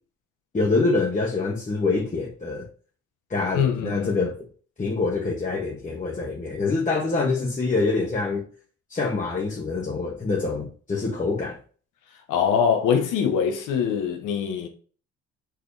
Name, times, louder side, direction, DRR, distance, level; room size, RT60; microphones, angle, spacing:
voice 1, 0.5-2.7 3.3-4.4 4.8-8.4 8.9-11.6, left 3 dB, 25° left, 1.4 m, -25 dB
voice 2, 3.5-4.2 12.3-14.7, left 7 dB, 90° left, 1.3 m, -23 dB
5.9 x 4.9 x 3.4 m
cardioid pair, 90°, 30 cm